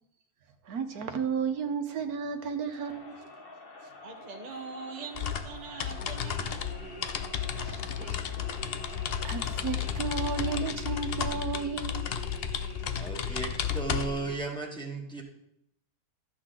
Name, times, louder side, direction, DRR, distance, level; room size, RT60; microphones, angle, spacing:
voice 1, 0.6-3.2 7.6-8.2 8.9-12.1, right 6 dB, 75° right, 7 dB, 1.5 m, -33 dB
Crowd, 2.7-10.8, left 3 dB, 40° left, 1.2 m, -49 dB
voice 2, 4.0-6.7 8.1-8.5, right 5 dB, 35° right, 3 dB, 0.8 m, -43 dB
sound 1, 5.1-14.4, left 8 dB, 60° left, 0.6 m, -33 dB
sound 2, 5.9-14.4, left 1 dB, 75° left, 3.3 m, -46 dB
voice 3, 12.9-15.2, right 3 dB, 5° left, 0 dB, 1.4 m, -35 dB
13.0 x 8.4 x 3.8 m, 0.77 s
omnidirectional pair, 1.6 m